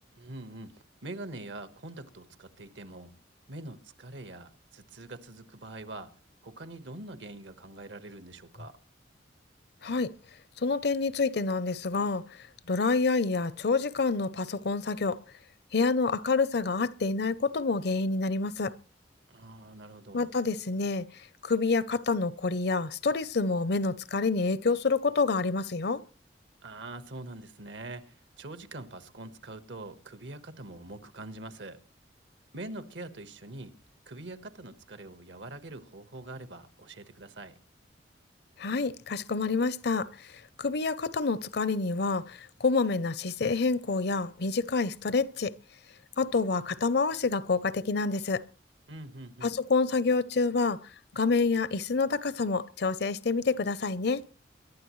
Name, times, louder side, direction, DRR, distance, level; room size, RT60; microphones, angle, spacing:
voice 1, 0.2-3.2 3.5-6.1 6.4-8.8 19.3-20.3 26.6-31.8 32.5-33.7 34.1-37.6 48.9-49.6, right 2 dB, 75° right, 1.4 m, -44 dB
voice 2, 10.6-12.2 12.7-15.2 15.7-18.7 20.1-21.0 21.4-26.0 38.6-40.3 40.6-45.5 46.2-48.4 49.4-50.8 51.1-54.2, left 4 dB, 60° left, 0.7 m, -27 dB
23.0 x 11.5 x 3.2 m
head